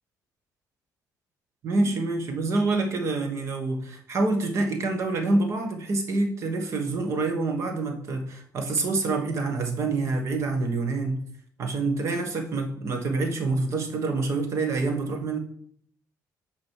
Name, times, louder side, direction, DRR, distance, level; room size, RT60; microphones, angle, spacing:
voice 1, 1.6-11.2 11.6-15.4, right 3 dB, 45° right, 5 dB, 1.2 m, -26 dB
6.0 x 4.9 x 6.3 m, 0.64 s
cardioid pair, 160°, 7 cm